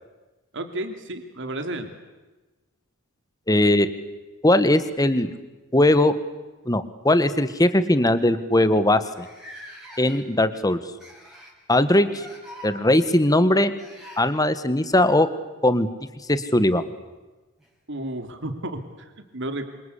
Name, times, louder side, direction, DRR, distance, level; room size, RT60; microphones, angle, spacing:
voice 1, 0.5-1.9 17.9-19.7, right 1 dB, 60° right, 7 dB, 3.1 m, -32 dB
voice 2, 3.5-3.9 4.4-5.3 5.7-6.1 6.6-9.3 10.0-10.8 11.7-12.3 12.6-13.7 14.2-15.3 15.6-15.9 16.3-16.9, left 1 dB, 15° left, 12 dB, 1.6 m, -19 dB
sound 1, 4.4-5.6 6.6-6.8 7.2-7.4 8.1-8.2 8.4-8.5 9.1-10.4 11.0-11.6 12.1-12.7 13.8-14.3 16.4-16.5 17.6-17.7, equal, ahead, 5.9 m, -44 dB
27.5 x 26.0 x 8.4 m, 1.2 s
head